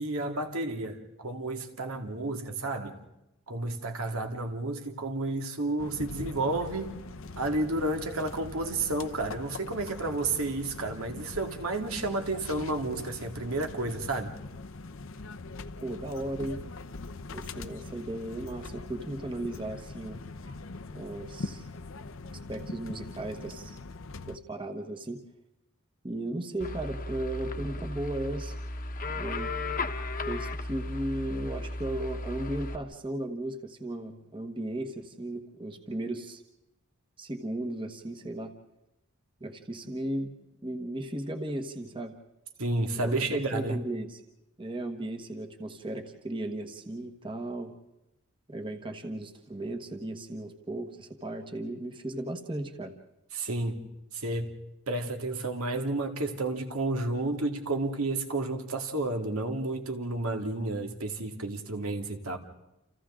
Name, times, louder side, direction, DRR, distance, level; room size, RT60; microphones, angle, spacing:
voice 1, 0.0-3.0 3.5-6.9 7.4-14.3 42.6-43.8 53.4-53.8 54.1-54.5 54.9-62.4, right 2 dB, 80° right, 4 dB, 2.3 m, -31 dB
sound 1, 5.8-24.4, left 3 dB, 65° left, 0.8 m, -42 dB
voice 2, 15.8-16.6 17.3-20.2 20.9-21.7 22.5-23.8 24.2-25.2 26.0-28.6 29.1-29.5 30.3-36.4 37.2-38.5 39.4-40.3 40.6-42.1 43.0-44.2 44.6-47.7 48.5-52.9, right 1 dB, 25° right, 6 dB, 1.3 m, -36 dB
sound 2, 26.6-32.8, left 2 dB, 40° left, 1.2 m, -35 dB
29.5 x 28.5 x 3.8 m, 0.93 s
head